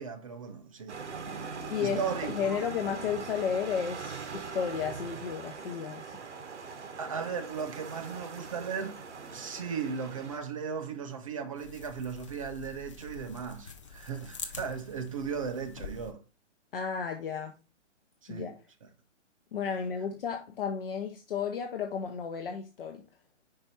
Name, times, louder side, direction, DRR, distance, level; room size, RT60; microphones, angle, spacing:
voice 1, 0.0-1.5 1.8-2.7 7.0-9.0 9.3-16.2 18.2-18.5, right 6 dB, 30° right, 0.5 m, -37 dB
sound 1, 0.9-10.4, right 5 dB, 70° right, 1.3 m, -41 dB
voice 2, 1.7-6.1 16.7-17.6 18.3-18.6 19.5-23.0, left 7 dB, 50° left, 0.8 m, -33 dB
sound 2, 11.6-16.1, left 5 dB, 25° left, 0.5 m, -45 dB
5.1 x 4.7 x 4.2 m
hypercardioid pair, 160°, 36 cm